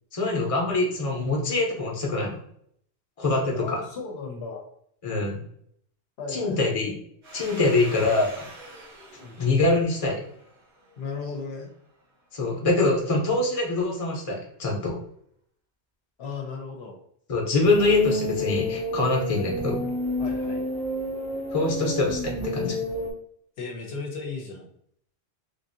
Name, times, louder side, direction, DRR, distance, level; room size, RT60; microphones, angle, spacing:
voice 1, 0.1-2.4 3.2-3.8 5.0-5.4 6.3-6.9 7.3-8.4 9.4-10.2 12.3-15.0 17.3-19.8 21.5-22.8, left 3 dB, 35° left, -1 dB, 0.8 m, -24 dB
voice 2, 3.5-4.6 6.2-6.8 9.2-9.4 11.0-11.7 16.2-17.0 20.2-20.6 23.6-24.7, left 4 dB, 75° left, 1 dB, 0.9 m, -36 dB
Domestic sounds home sounds, 7.2-11.6, right 2 dB, 85° right, 1.5 m, -45 dB
sound 1, 17.6-23.1, equal, 50° right, 1.0 m, -30 dB
3.4 x 2.6 x 2.6 m, 0.67 s
omnidirectional pair, 1.1 m